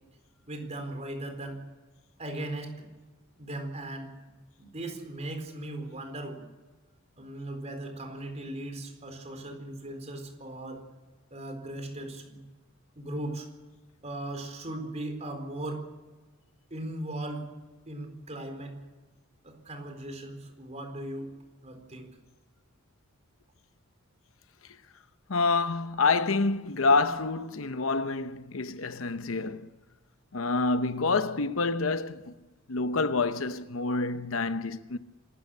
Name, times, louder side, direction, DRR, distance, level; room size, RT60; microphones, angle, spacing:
voice 1, 0.5-1.6 2.2-2.9 3.4-4.1 4.6-6.5 7.2-10.8 11.3-12.4 13.0-13.5 14.0-15.9 16.7-17.5 17.9-18.8 19.4-21.3 21.6-22.1, right 1 dB, 35° right, 4.3 m, -38 dB
voice 2, 25.3-29.7 30.3-32.3 32.7-35.0, left 3 dB, 75° left, 0.9 m, -27 dB
26.0 x 14.0 x 8.3 m
head